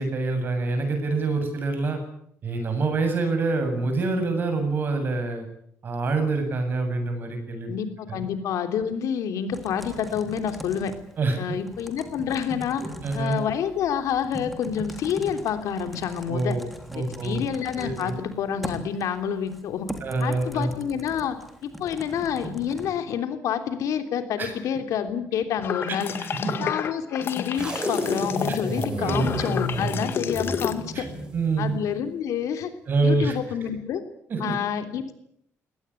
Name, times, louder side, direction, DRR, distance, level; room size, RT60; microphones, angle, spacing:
voice 1, 0.0-2.0 2.4-5.4 5.8-7.7 8.1-8.2 11.2-11.4 12.8-13.4 16.3-16.7 16.9-17.4 17.8-18.1 20.0-20.7 24.4-24.5 25.9-26.0 26.3-26.5 28.5-28.6 29.0-29.3 30.9-31.0 31.3-31.7 32.9-33.3 34.3-34.5, right 3 dB, 40° right, 6 dB, 7.6 m, -26 dB
voice 2, 7.7-10.9 11.4-12.8 13.1-16.6 16.9-19.9 20.2-26.1 26.6-31.1 31.6-32.7 33.0-34.0 34.4-35.1, left 8 dB, 85° left, 8 dB, 3.3 m, -28 dB
Typing, 9.5-22.9, equal, ahead, 3.3 m, -40 dB
sound 1, 25.6-30.7, left 7 dB, 45° left, 2.0 m, -30 dB
sound 2, 27.5-31.8, right 1 dB, 15° right, 5.4 m, -31 dB
22.5 x 18.5 x 9.9 m, 0.70 s
cardioid pair, 170°, 5 cm